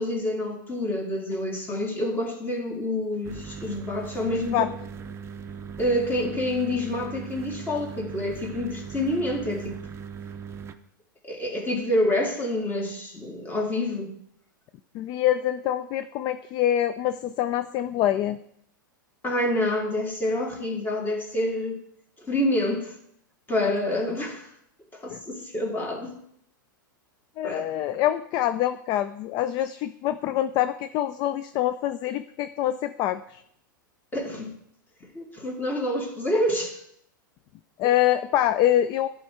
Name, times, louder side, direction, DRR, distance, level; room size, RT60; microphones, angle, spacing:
voice 1, 0.0-4.7 5.8-9.8 11.2-14.1 19.2-21.8 22.2-22.9 23.5-24.5 24.9-26.1 27.4-27.7 34.1-34.6 35.1-36.8, left 1 dB, 20° left, 1 dB, 2.0 m, -27 dB
sound 1, 3.2-10.7, right 6 dB, 25° right, 0.6 m, -39 dB
voice 2, 4.3-4.7 14.9-18.4 25.1-25.2 27.4-33.4 37.8-39.1, left 12 dB, 40° left, 11 dB, 0.4 m, -25 dB
11.5 x 4.4 x 3.6 m, 0.69 s
hypercardioid pair, 100°, 11 cm